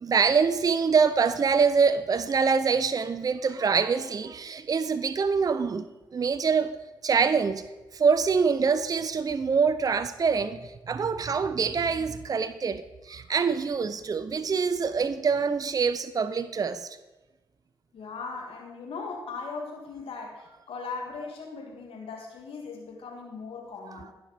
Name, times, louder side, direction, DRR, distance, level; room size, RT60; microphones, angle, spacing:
voice 1, 0.0-5.9 6.1-6.7 7.0-7.6 7.9-16.9, right 5 dB, 40° right, 0.5 m, -25 dB
voice 2, 17.9-24.1, left 4 dB, 65° left, 2.5 m, -39 dB
16.0 x 5.9 x 4.3 m
supercardioid pair, 50°, 10 cm